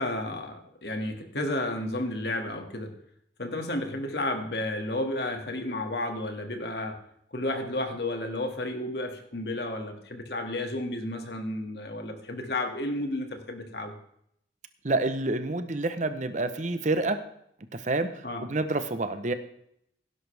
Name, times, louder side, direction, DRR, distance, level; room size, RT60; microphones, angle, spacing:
voice 1, 0.0-2.9 3.4-7.0 7.3-13.9 18.2-18.4, left 1 dB, 60° left, 4 dB, 2.2 m, -32 dB
voice 2, 14.8-17.2 17.7-19.3, right 2 dB, 40° right, 10 dB, 0.9 m, -28 dB
17.5 x 11.0 x 3.5 m, 0.71 s
head